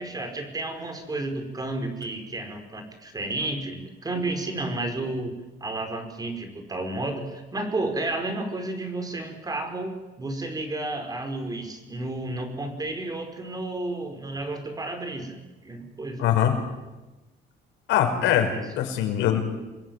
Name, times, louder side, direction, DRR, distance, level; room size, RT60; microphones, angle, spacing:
voice 1, 0.0-5.3 5.6-16.2 18.3-18.7, right 2 dB, 20° right, 6 dB, 5.1 m, -32 dB
voice 2, 16.2-16.6 17.9-19.4, left 10 dB, 90° left, 4 dB, 5.6 m, -22 dB
27.5 x 21.5 x 9.5 m, 1.1 s
cardioid pair, 135°, 19 cm